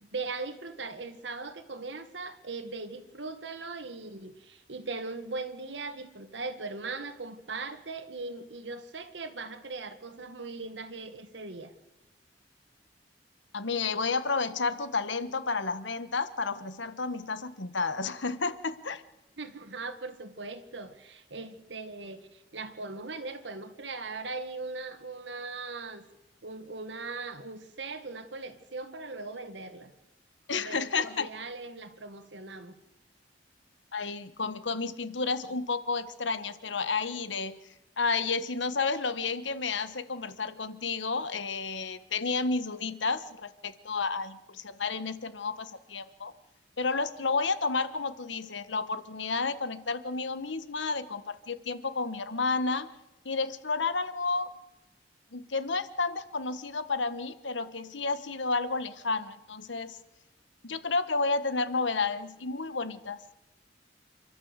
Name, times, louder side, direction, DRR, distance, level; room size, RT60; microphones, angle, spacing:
voice 1, 0.0-11.7 19.4-26.0 26.4-29.9 30.5-32.8, right 3 dB, 80° right, 9 dB, 1.7 m, -39 dB
voice 2, 13.5-19.0 30.5-31.3 33.9-37.6 38.0-46.3 46.8-52.9 53.2-54.5 55.3-60.0 60.6-63.2, left 4 dB, 90° left, 13 dB, 1.3 m, -31 dB
28.0 x 12.5 x 8.1 m, 1.0 s
head